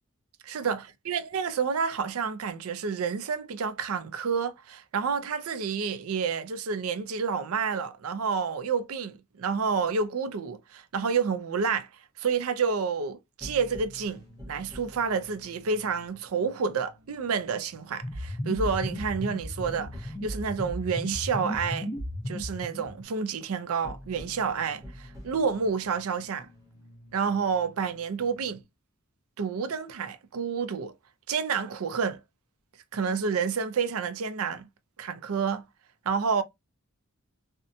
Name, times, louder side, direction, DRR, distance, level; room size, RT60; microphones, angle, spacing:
voice 1, 0.5-11.9 12.2-21.9 22.3-26.5 27.1-28.6 29.4-30.9 31.3-32.2 32.9-34.7 35.0-35.6 36.1-36.4, right 5 dB, 85° right, 0.5 m, -29 dB
sound 1, 13.4-28.6, equal, 15° right, 0.9 m, -49 dB
sound 2, 18.0-23.0, equal, 20° left, 0.6 m, -35 dB
2.7 x 2.1 x 2.5 m
head